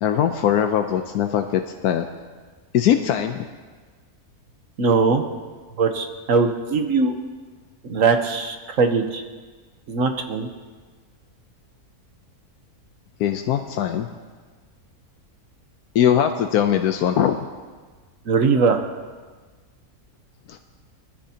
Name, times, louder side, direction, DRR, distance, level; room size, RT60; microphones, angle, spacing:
voice 1, 0.0-2.1 2.7-3.5 13.2-14.1 15.9-17.4 20.5-20.6, left 9 dB, 85° left, 6 dB, 1.2 m, -21 dB
voice 2, 4.8-5.2 5.8-7.1 7.8-9.2 9.9-10.5 18.3-18.8, right 4 dB, 60° right, 6 dB, 1.3 m, -20 dB
20.0 x 13.5 x 2.9 m, 1.4 s
omnidirectional pair, 1.6 m